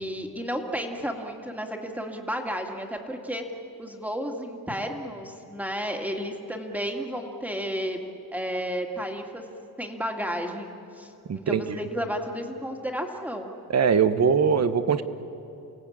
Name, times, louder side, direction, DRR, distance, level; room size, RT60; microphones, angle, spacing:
voice 1, 0.0-3.4 3.8-8.0 8.3-9.4 9.8-13.5, equal, 5° right, 3 dB, 2.3 m, -32 dB
voice 2, 11.3-11.8 13.7-15.0, right 6 dB, 45° right, 11 dB, 1.2 m, -22 dB
29.0 x 17.0 x 8.8 m, 2.8 s
cardioid pair, 110°, 35 cm